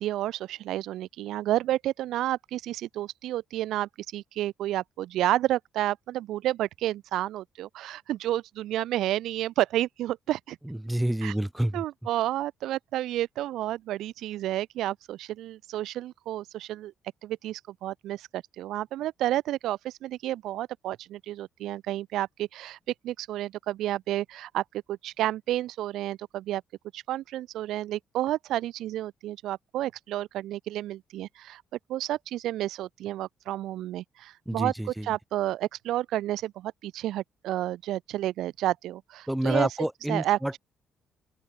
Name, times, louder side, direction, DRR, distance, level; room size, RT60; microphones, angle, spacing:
voice 1, 0.0-10.6 11.2-11.3 11.7-16.9 17.2-22.8 23.0-26.6 26.9-31.6 31.9-39.7 40.1-40.6, right 14 dB, 65° right, 4.0 m, -30 dB
voice 2, 10.7-11.8 34.5-35.1 39.3-40.5, right 1 dB, 5° right, 3.9 m, -28 dB
open air
figure-of-eight pair, 45°, 0 cm